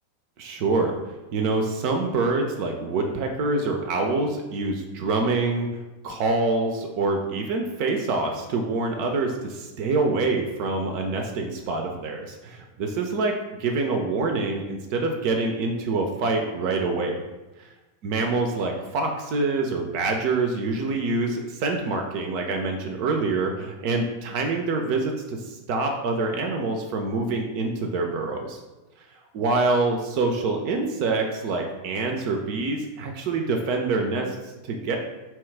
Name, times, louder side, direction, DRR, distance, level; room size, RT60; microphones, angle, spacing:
voice 1, 0.4-0.9 1.3-5.7 6.0-17.2 18.0-28.6 29.3-35.0, right 3 dB, 45° right, 3 dB, 0.4 m, -26 dB
2.8 x 2.3 x 3.3 m, 1.1 s
figure-of-eight pair, 90°, 0 cm